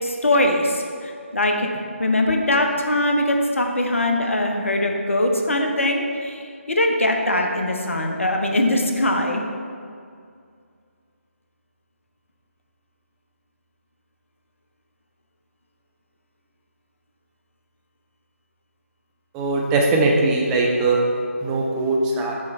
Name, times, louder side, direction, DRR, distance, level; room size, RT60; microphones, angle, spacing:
voice 1, 0.0-1.7 2.0-9.4, left 1 dB, 65° left, 2 dB, 0.8 m, -21 dB
voice 2, 19.3-21.0 21.4-22.3, right 2 dB, 10° right, -1 dB, 0.3 m, -20 dB
6.7 x 3.1 x 4.7 m, 2.3 s
figure-of-eight pair, 150°, 8 cm